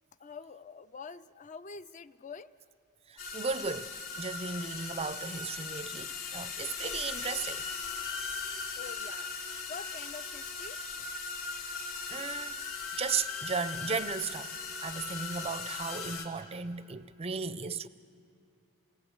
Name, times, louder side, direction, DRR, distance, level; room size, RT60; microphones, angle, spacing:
voice 1, 0.2-2.5 8.7-9.3 9.7-10.8, left 5 dB, 35° left, 0.5 m, -45 dB
sound 1, 3.2-16.3, left 5 dB, 65° left, 2.9 m, -38 dB
voice 2, 3.3-7.6 12.0-12.5 13.0-14.5 14.8-17.9, right 5 dB, 25° right, 0.5 m, -35 dB
29.5 x 18.5 x 8.0 m
head